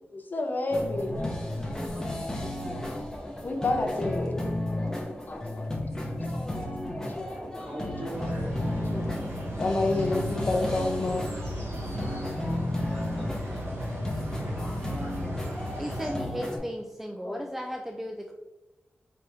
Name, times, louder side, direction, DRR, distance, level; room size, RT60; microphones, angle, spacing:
voice 1, 0.1-1.3 1.8-2.8 3.4-4.4 5.0-5.7 6.1-6.7 7.0-7.9 8.9-9.1 9.6-11.2 11.5-11.6 14.6-14.8 17.2-17.5, left 2 dB, 45° left, 3 dB, 0.6 m, -31 dB
sound 1, 0.7-16.6, left 1 dB, 15° left, 0.8 m, -33 dB
voice 2, 7.0-9.1 13.3-14.8, equal, 55° right, -4 dB, 1.5 m, -46 dB
sound 2, 8.1-16.1, equal, 80° right, 1.2 m, -36 dB
voice 3, 15.8-18.3, equal, 5° right, 2 dB, 0.3 m, -35 dB
4.7 x 3.3 x 3.0 m, 1.1 s
wide cardioid pair, 145°, 4 cm